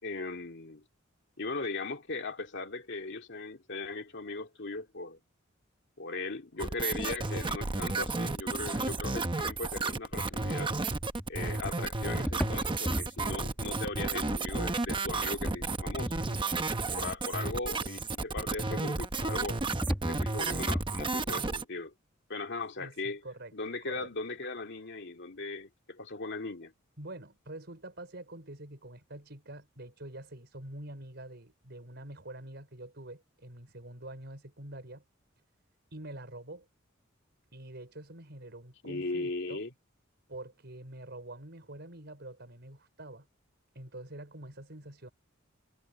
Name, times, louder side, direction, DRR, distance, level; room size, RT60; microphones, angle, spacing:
voice 1, 0.0-0.8 1.4-5.2 6.0-10.8 11.3-16.4 16.9-19.6 20.1-21.9 22.3-23.2 23.5-26.7 38.8-39.7, left 3 dB, 60° left, 2.5 m, -38 dB
sound 1, 6.6-21.6, right 3 dB, 25° right, 0.9 m, -32 dB
sound 2, 9.4-9.6 10.1-10.4 10.8-11.6 12.1-13.2 13.9-14.0 15.1-15.6 15.9-16.6 17.0-17.1 19.0-20.9, equal, 5° left, 2.1 m, -36 dB
voice 2, 22.8-23.5 23.8-24.1 27.0-35.0 35.9-36.7 37.5-39.6 40.3-43.3 43.7-45.1, right 1 dB, 55° right, 5.2 m, -46 dB
head